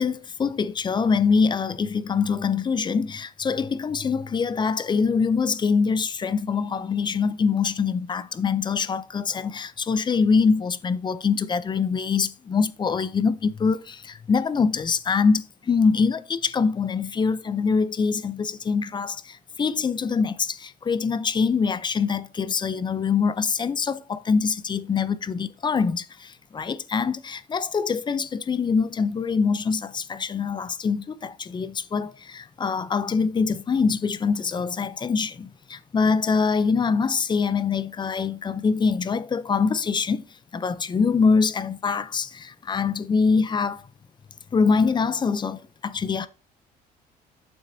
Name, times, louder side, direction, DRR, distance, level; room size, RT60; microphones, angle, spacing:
voice 1, 0.0-40.2 40.5-43.8 44.5-46.3, left 5 dB, 25° left, 0.5 m, -24 dB
9.1 x 7.0 x 2.7 m
cardioid pair, 110°, 17 cm